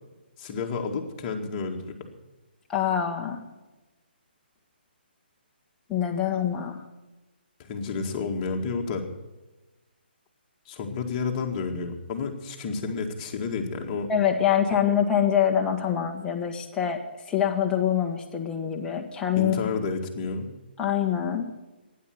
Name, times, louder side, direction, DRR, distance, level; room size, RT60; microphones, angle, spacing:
voice 1, 0.4-1.9 7.6-9.0 10.7-14.1 19.4-20.5, left 4 dB, 30° left, 2 dB, 2.0 m, -30 dB
voice 2, 2.7-3.4 5.9-6.8 14.1-19.6 20.8-21.5, left 9 dB, 10° left, 1 dB, 1.5 m, -25 dB
12.0 x 10.0 x 9.1 m, 1.1 s
hypercardioid pair, 150°, 6 cm